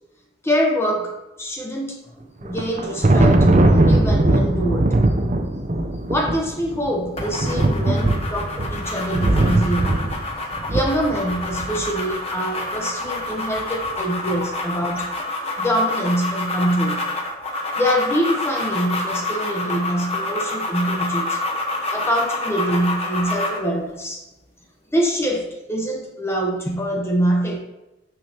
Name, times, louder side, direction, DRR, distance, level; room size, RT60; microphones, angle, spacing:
voice 1, 0.4-4.9 6.1-10.1 10.7-15.1 15.6-17.1 17.7-21.4 21.9-24.2 24.9-27.6, equal, 15° left, 1 dB, 0.8 m, -24 dB
Thunder, 2.4-11.9, right 2 dB, 40° right, 0.6 m, -19 dB
sound 1, 7.2-23.7, left 2 dB, 35° left, 1.1 m, -28 dB
9.1 x 5.4 x 2.9 m, 0.96 s
head